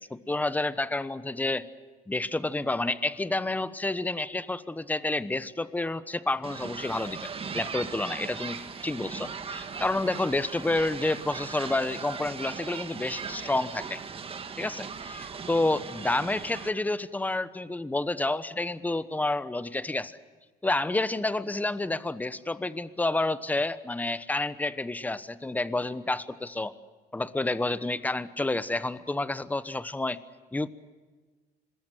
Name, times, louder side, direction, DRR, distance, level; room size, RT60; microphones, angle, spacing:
voice 1, 0.0-1.7 2.1-14.0 14.6-20.1 20.6-26.7 27.1-30.2 30.5-30.7, left 2 dB, 10° left, 14 dB, 1.1 m, -29 dB
sound 1, 6.4-16.7, right 5 dB, 35° right, 1.8 m, -39 dB
26.5 x 20.5 x 7.8 m, 1.4 s
cardioid pair, 110°, 17 cm